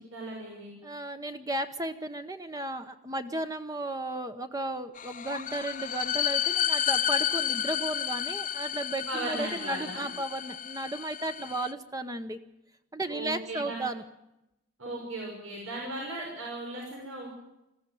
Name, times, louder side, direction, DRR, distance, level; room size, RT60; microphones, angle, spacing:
voice 1, 0.1-0.7 9.1-10.1 13.1-13.8 14.8-17.3, right 2 dB, 90° right, -1 dB, 6.1 m, -37 dB
voice 2, 0.8-12.4 12.9-14.0, right 1 dB, 15° right, 8 dB, 0.9 m, -34 dB
sound 1, 5.0-11.7, left 10 dB, 40° left, 0.8 m, -31 dB
20.5 x 15.0 x 9.3 m, 0.91 s
head